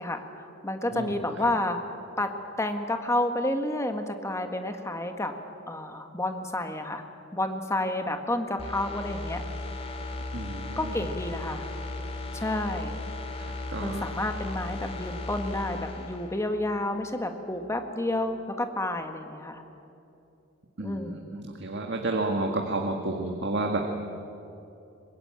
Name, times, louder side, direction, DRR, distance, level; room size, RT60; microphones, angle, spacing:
voice 1, 0.0-1.8 2.2-2.3 2.6-5.3 5.7-7.0 7.3-9.4 10.8-11.6 12.3-13.0 13.8-19.6 20.8-21.4, left 1 dB, 15° left, 6 dB, 1.6 m, -30 dB
sound 1, 8.6-17.3 17.6-17.7, left 2 dB, 30° left, 2.6 m, -36 dB
voice 2, 10.3-10.9 13.7-14.0 20.8-23.8, right 2 dB, 55° right, 2 dB, 1.8 m, -31 dB
24.0 x 20.5 x 8.9 m, 2.8 s
head